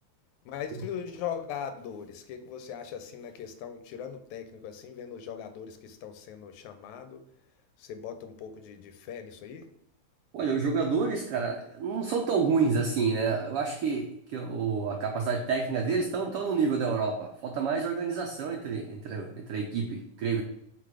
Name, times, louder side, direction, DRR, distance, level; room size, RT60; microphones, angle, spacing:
voice 1, 0.5-7.2 7.8-9.7, left 8 dB, 85° left, 9 dB, 2.0 m, -40 dB
voice 2, 10.3-20.4, right 5 dB, 85° right, 3 dB, 1.2 m, -29 dB
5.9 x 4.0 x 4.8 m, 0.75 s
omnidirectional pair, 3.4 m